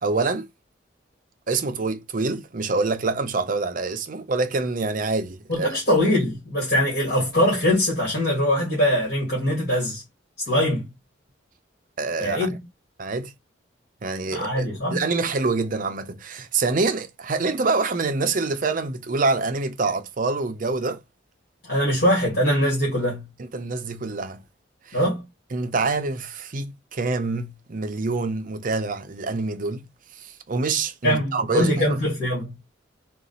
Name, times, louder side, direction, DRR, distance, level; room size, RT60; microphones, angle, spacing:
voice 1, 0.0-0.5 1.5-5.8 12.0-12.5 13.0-13.3 14.0-14.7 14.9-21.0 23.4-24.4 24.9-25.0 25.5-29.9 30.2-32.0, right 3 dB, 45° right, 0.6 m, -26 dB
voice 2, 5.5-10.0 10.5-10.9 12.2-12.6 14.3-15.0 21.7-23.3 24.9-25.2 31.0-32.5, equal, 55° left, 2.2 m, -22 dB
3.8 x 2.5 x 3.9 m
head